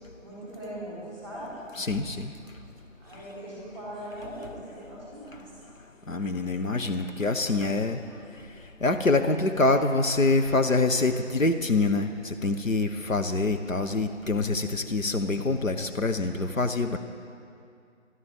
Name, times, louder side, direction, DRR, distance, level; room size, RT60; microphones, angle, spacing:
voice 1, 0.2-1.5 3.0-5.5, right 1 dB, 10° left, -9 dB, 3.6 m, -40 dB
voice 2, 1.8-2.3 6.1-8.0 8.8-17.0, left 3 dB, 85° left, 7 dB, 1.0 m, -25 dB
22.5 x 12.5 x 3.7 m, 2.4 s
figure-of-eight pair, 160°, 38 cm